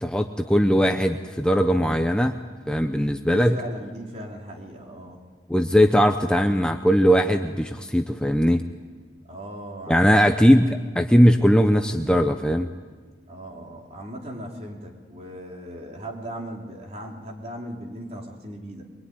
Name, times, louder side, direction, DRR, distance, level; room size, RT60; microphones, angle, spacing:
voice 1, 0.0-2.4 2.7-3.6 5.5-8.6 9.9-12.7, equal, 5° left, 5 dB, 0.8 m, -19 dB
voice 2, 3.2-5.3 9.3-10.1 13.3-18.8, right 1 dB, 40° right, 0 dB, 3.8 m, -38 dB
23.5 x 23.5 x 9.7 m, 1.5 s
head